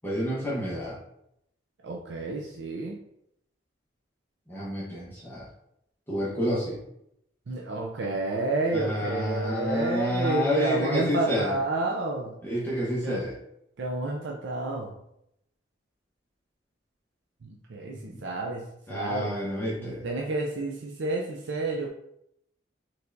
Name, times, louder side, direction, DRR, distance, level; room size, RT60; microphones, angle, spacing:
voice 1, 0.0-1.0 4.5-5.5 6.1-6.8 8.7-11.5 12.4-13.3 18.0-18.2 18.9-20.1, equal, 10° left, -7 dB, 0.9 m, -29 dB
voice 2, 1.8-3.0 7.5-12.4 13.0-13.2 13.8-14.9 17.4-19.3 19.8-21.9, right 2 dB, 75° right, -1 dB, 0.5 m, -30 dB
4.4 x 3.3 x 2.6 m, 0.77 s
head